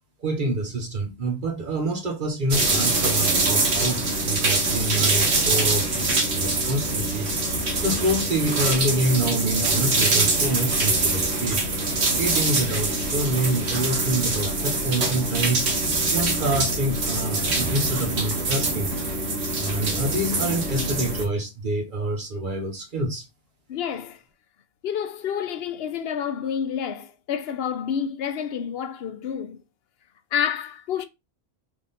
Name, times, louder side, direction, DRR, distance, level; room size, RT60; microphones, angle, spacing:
voice 1, 0.2-11.6 12.2-15.7 16.1-19.0 19.6-23.2, right 1 dB, 50° right, 1.2 m, -27 dB
sound 1, 2.5-21.3, right 2 dB, 75° right, 1.3 m, -24 dB
voice 2, 23.7-24.2 24.8-29.6 30.3-31.1, left 8 dB, 70° left, 0.8 m, -29 dB
3.5 x 2.9 x 4.1 m
omnidirectional pair, 1.1 m